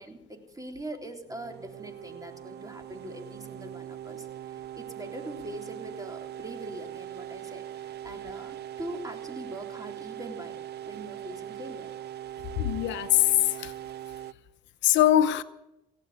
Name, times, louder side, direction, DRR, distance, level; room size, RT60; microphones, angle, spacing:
voice 1, 0.0-11.9, right 1 dB, 20° right, 4 dB, 3.5 m, -42 dB
sound 1, 1.3-14.3, right 11 dB, 60° right, 0.6 m, -41 dB
voice 2, 12.6-13.7 14.8-15.4, left 12 dB, 80° left, 13 dB, 0.7 m, -22 dB
17.5 x 7.8 x 9.2 m, 0.86 s
supercardioid pair, 55°, 19 cm